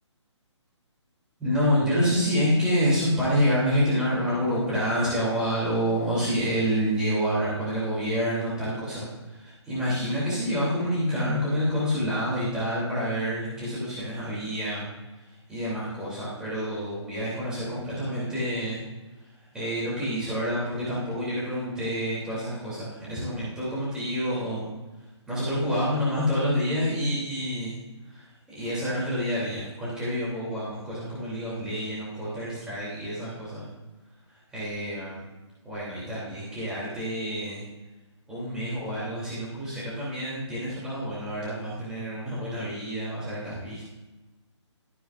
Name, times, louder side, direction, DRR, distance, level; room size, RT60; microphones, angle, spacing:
voice 1, 1.4-14.9 15.2-18.8 19.5-24.7 25.3-27.8 28.1-33.7 34.5-35.3 35.6-37.6 38.3-43.9, equal, 5° right, -9 dB, 2.9 m, -28 dB
14.0 x 9.4 x 2.5 m, 1.1 s
hypercardioid pair, 160°, 16 cm